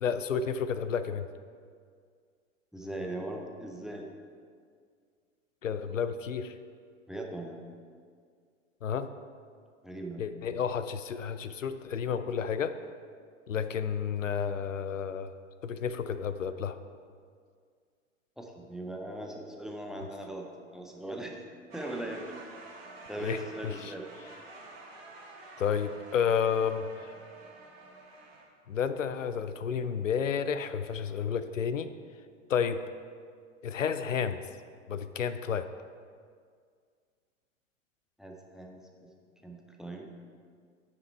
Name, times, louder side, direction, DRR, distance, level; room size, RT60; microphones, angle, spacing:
voice 1, 0.0-1.3 5.6-6.5 8.8-9.1 10.2-12.8 13.5-15.3 15.6-16.8 23.2-23.9 25.6-27.1 28.7-31.9 32.5-32.8 33.6-34.4 34.9-35.7, left 7 dB, 80° left, 11 dB, 0.5 m, -31 dB
voice 2, 2.7-4.1 7.1-7.6 9.8-10.2 18.4-20.5 20.7-21.4 21.7-22.3 23.1-24.1 38.2-39.1 39.4-40.1, right 1 dB, ahead, 2 dB, 0.6 m, -39 dB
sound 1, 21.7-28.5, right 3 dB, 50° right, 1.7 m, -49 dB
9.4 x 5.9 x 4.5 m, 2.1 s
figure-of-eight pair, 90°, 38 cm